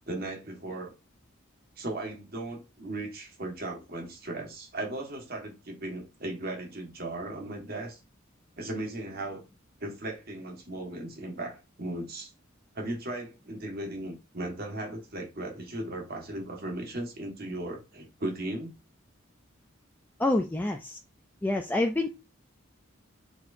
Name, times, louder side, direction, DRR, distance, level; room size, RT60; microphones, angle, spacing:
voice 1, 0.1-0.9 1.8-8.0 8.6-9.4 9.8-12.3 12.7-18.7, right 1 dB, 45° right, 1.6 m, -37 dB
voice 2, 20.2-21.0 21.4-22.1, left 2 dB, 10° left, 0.3 m, -27 dB
4.3 x 4.2 x 2.6 m
head